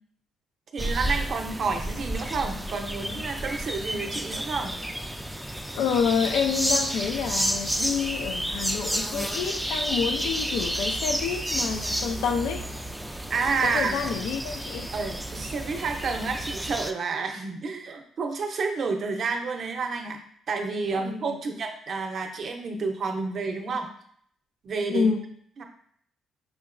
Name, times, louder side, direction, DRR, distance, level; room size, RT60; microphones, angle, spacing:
voice 1, 0.7-4.7 13.3-14.0 14.9-20.2 20.5-23.9 24.6-25.1 25.6-25.7, right 4 dB, 55° right, 4 dB, 0.6 m, -30 dB
sound 1, 0.8-16.9, right 1 dB, 5° right, 0.3 m, -31 dB
voice 2, 5.7-12.7 13.6-14.9 21.0-21.4 24.9-25.2, left 6 dB, 85° left, 5 dB, 0.3 m, -28 dB
4.9 x 2.9 x 2.5 m, 0.63 s
cardioid pair, 90°, 0 cm